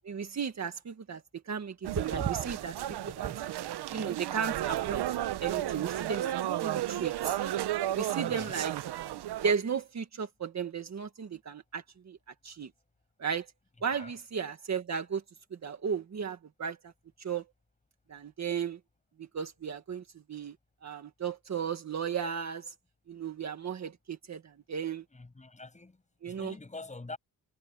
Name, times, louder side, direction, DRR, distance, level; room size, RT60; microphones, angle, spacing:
voice 1, 0.0-1.2 1.5-3.5 3.9-7.4 7.9-8.7 9.4-12.2 12.4-12.7 13.2-13.5 13.8-15.2 15.5-16.9 17.2-17.4 18.1-18.8 19.2-20.0 20.3-20.5 20.8-22.7 23.1-25.0 26.2-26.5, right 6 dB, 45° right, 1.8 m, -35 dB
sound 1, 1.8-9.5, right 13 dB, 80° right, 0.8 m, -33 dB
voice 2, 8.2-8.6 13.9-14.1 25.1-27.2, left 3 dB, 20° left, 7.3 m, -45 dB
wide cardioid pair, 150°, 39 cm